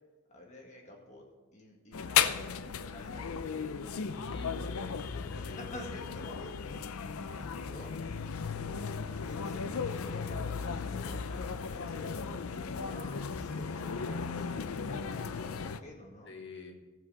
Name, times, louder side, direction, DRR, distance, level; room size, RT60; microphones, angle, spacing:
voice 1, 0.3-1.3 1.5-8.2 8.9-16.3, left 1 dB, 30° left, 0 dB, 1.9 m, -50 dB
sound 1, 1.9-15.8, left 6 dB, 80° left, 0.5 m, -35 dB
voice 2, 3.9-5.8 7.7-8.8 16.3-16.7, left 3 dB, 55° left, 2 dB, 1.6 m, -48 dB
14.0 x 7.7 x 4.9 m, 1.3 s
head